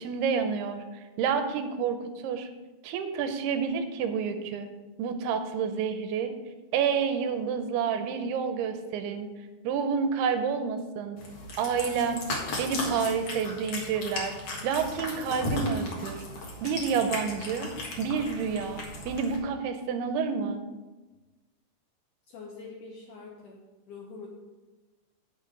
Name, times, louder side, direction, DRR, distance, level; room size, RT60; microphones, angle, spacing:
voice 1, 0.0-2.0 2.2-2.5 2.8-4.7 5.0-6.4 6.7-9.3 9.6-11.2 11.6-12.3 12.6-14.4 14.6-16.2 16.6-20.6, right 6 dB, 85° right, 8 dB, 2.6 m, -29 dB
Cat, 11.2-19.4, left 2 dB, 55° left, 1.9 m, -36 dB
voice 2, 22.3-23.6 23.9-24.3, left 4 dB, 75° left, -1 dB, 1.9 m, -44 dB
9.0 x 6.6 x 5.0 m, 1.2 s
omnidirectional pair, 4.7 m